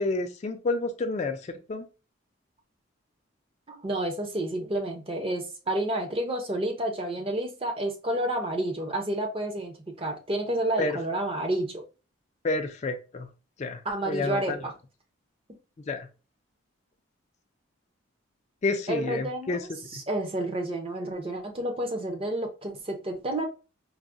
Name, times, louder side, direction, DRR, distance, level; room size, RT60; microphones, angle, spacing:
voice 1, 0.0-1.9 10.8-11.0 12.4-13.3 13.6-14.6 15.9-16.1 18.6-19.6 19.9-20.0, left 3 dB, 35° left, 0.3 m, -29 dB
voice 2, 3.7-11.8 13.8-14.7 18.9-19.6 19.9-23.5, right 1 dB, 25° right, 0.5 m, -30 dB
4.6 x 2.0 x 2.5 m
head